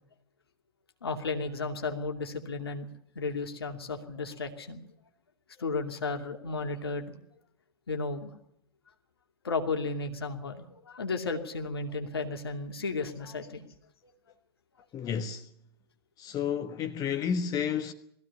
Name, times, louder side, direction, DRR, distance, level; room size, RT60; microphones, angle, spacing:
voice 1, 1.0-2.9 3.1-4.8 5.6-7.1 7.9-8.3 9.4-13.7, left 3 dB, 70° left, 2.7 m, -34 dB
voice 2, 14.9-15.5 16.2-17.9, left 7 dB, 30° left, 1.3 m, -31 dB
20.5 x 15.5 x 9.9 m
figure-of-eight pair, 95°, 13 cm